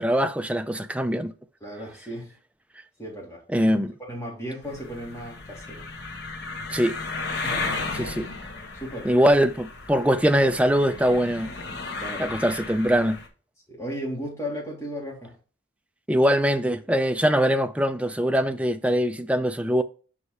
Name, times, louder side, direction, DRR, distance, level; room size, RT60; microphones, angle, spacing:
voice 1, 0.0-1.3 3.5-3.9 6.7-7.0 8.0-8.3 9.0-11.5 12.2-13.2 16.1-19.8, equal, 5° right, 0.4 m, -22 dB
voice 2, 1.6-2.3 3.0-3.7 4.0-5.9 7.4-8.0 8.7-9.1 12.0-12.4 13.7-15.4, equal, 15° left, 3.3 m, -35 dB
sound 1, 4.6-13.3, left 3 dB, 60° left, 1.4 m, -34 dB
5.4 x 5.0 x 4.7 m
head